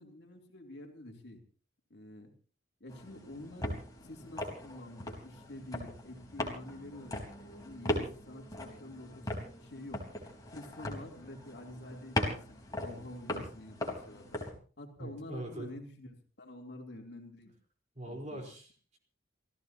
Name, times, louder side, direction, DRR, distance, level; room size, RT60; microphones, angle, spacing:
voice 1, 0.0-1.4 1.9-2.3 2.8-10.0 10.5-14.4 14.8-17.5 18.0-18.4, left 1 dB, 55° left, 1 dB, 3.5 m, -48 dB
sound 1, 2.9-14.5, left 1 dB, 20° left, 4.2 m, -39 dB
voice 2, 15.0-15.7 17.9-19.0, right 1 dB, 35° right, 2 dB, 4.4 m, -42 dB
28.0 x 16.0 x 3.0 m, 0.40 s
head